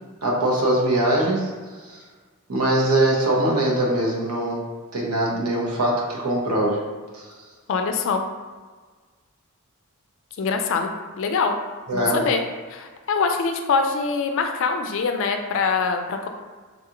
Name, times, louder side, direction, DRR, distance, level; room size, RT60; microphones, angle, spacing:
voice 1, 0.2-1.5 1.8-2.0 2.5-4.6 4.9-6.8 7.1-7.3 11.9-12.2, right 1 dB, 85° right, -3 dB, 0.9 m, -22 dB
voice 2, 7.7-8.2 10.4-11.6 11.9-12.4 12.7-16.3, left 5 dB, 60° left, 5 dB, 0.4 m, -24 dB
3.9 x 2.4 x 2.9 m, 1.5 s
head